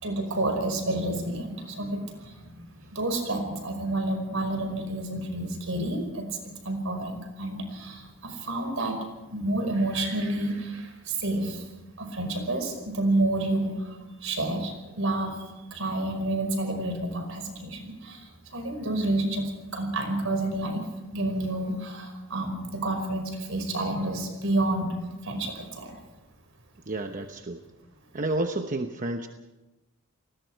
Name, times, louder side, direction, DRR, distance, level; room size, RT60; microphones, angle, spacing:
voice 1, 0.0-2.6 2.9-6.2 6.6-9.0 9.3-11.6 12.0-15.4 15.7-18.2 18.5-19.4 19.7-20.9 21.1-24.9 25.2-26.0, right 1 dB, 70° right, 5 dB, 5.2 m, -29 dB
voice 2, 26.9-27.7 28.1-29.3, right 2 dB, 40° right, 5 dB, 1.0 m, -30 dB
29.5 x 19.5 x 4.7 m, 1.1 s
head